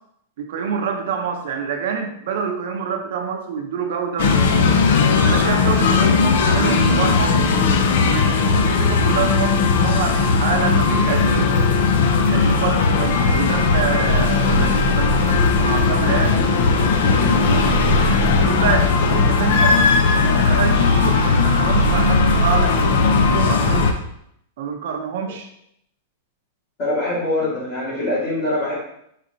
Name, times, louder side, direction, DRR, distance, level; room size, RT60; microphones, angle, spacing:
voice 1, 0.4-4.4 5.2-7.4 8.0-11.6 12.3-17.8 18.4-19.8 20.1-22.8 23.3-24.0 24.6-25.5, right 6 dB, 55° right, 3 dB, 0.6 m, -26 dB
sound 1, 4.2-23.9, left 4 dB, 55° left, 0.5 m, -17 dB
voice 2, 26.8-28.8, left 1 dB, 40° left, -7 dB, 1.8 m, -23 dB
4.7 x 4.2 x 2.7 m, 0.74 s
supercardioid pair, 170°, 0 cm